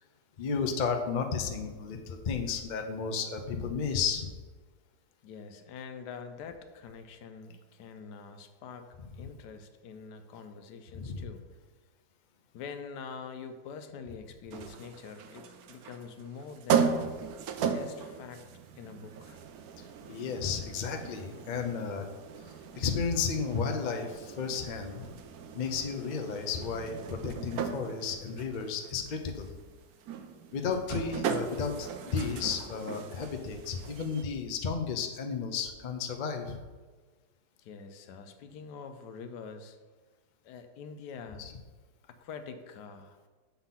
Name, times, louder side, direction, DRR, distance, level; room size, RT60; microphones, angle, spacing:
voice 1, 0.4-4.3 10.9-11.3 20.1-22.1 22.7-25.0 25.5-29.5 30.5-36.6 41.4-41.5, left 5 dB, 60° left, 4 dB, 0.4 m, -33 dB
voice 2, 5.2-11.4 12.5-17.0 17.6-18.4 18.8-19.4 37.6-39.8 40.4-41.5 42.1-43.2, left 5 dB, 80° left, 8 dB, 1.2 m, -45 dB
sound 1, 14.5-34.2, right 6 dB, 70° right, 1.0 m, -37 dB
7.0 x 3.9 x 5.7 m, 1.3 s
omnidirectional pair, 1.8 m